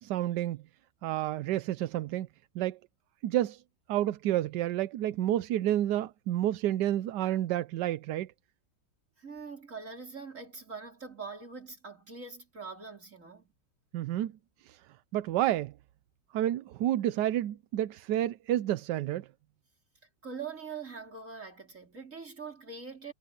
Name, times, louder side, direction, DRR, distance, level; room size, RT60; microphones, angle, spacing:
voice 1, 0.0-0.6 1.0-2.3 2.5-2.8 3.2-3.6 3.9-8.3 13.9-14.3 14.7-14.8 15.1-15.7 16.3-19.3, right 13 dB, 70° right, 1.1 m, -30 dB
voice 2, 9.2-13.5 20.2-23.1, right 5 dB, 35° right, 5.0 m, -43 dB
omnidirectional pair, 2.2 m